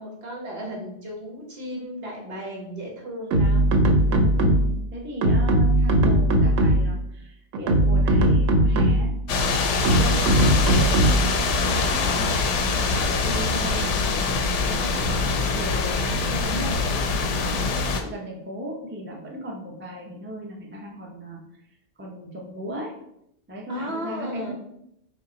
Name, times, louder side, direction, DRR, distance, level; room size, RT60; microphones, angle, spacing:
voice 1, 0.0-3.9 9.9-10.3 23.7-24.5, equal, 55° right, -2 dB, 1.3 m, -35 dB
sound 1, 3.3-4.8 5.2-7.0 7.5-9.2 9.8-11.4, right 1 dB, 85° right, 1.0 m, -19 dB
voice 2, 4.1-9.1 9.4-11.0 11.6-12.3 12.7-14.2 14.6-21.4 22.0-22.9 23.5-24.5, equal, 15° right, -2 dB, 0.5 m, -36 dB
sound 2, 9.3-18.0, left 4 dB, 75° left, 0.9 m, -24 dB
5.3 x 2.1 x 3.9 m, 0.78 s
omnidirectional pair, 1.3 m